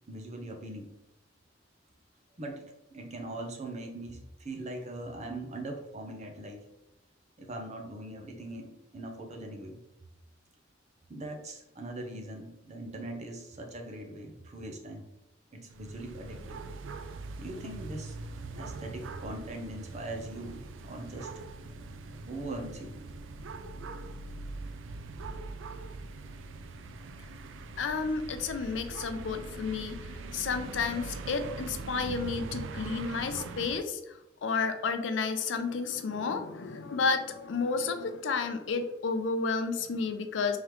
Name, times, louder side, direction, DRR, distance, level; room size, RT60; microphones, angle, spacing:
voice 1, 0.1-0.9 2.4-2.6 2.9-6.7 7.4-9.8 11.1-15.1 15.5-16.6 17.4-18.2 18.5-21.5 22.3-23.0, right 1 dB, 40° right, 3 dB, 0.7 m, -41 dB
sound 1, 15.7-33.8, right 3 dB, 85° right, 0.4 m, -42 dB
voice 2, 27.8-30.0 30.3-34.1 34.4-40.6, left 4 dB, 70° left, 8 dB, 0.4 m, -31 dB
3.7 x 3.1 x 3.1 m, 0.91 s
head